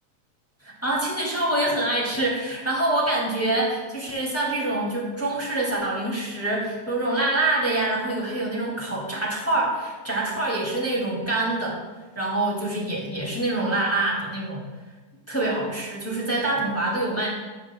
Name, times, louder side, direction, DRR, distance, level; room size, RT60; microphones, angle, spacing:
voice 1, 0.8-11.8 12.1-14.6 15.3-17.3, right 2 dB, 5° left, -4 dB, 1.6 m, -25 dB
12.0 x 10.5 x 2.3 m, 1.3 s
omnidirectional pair, 4.1 m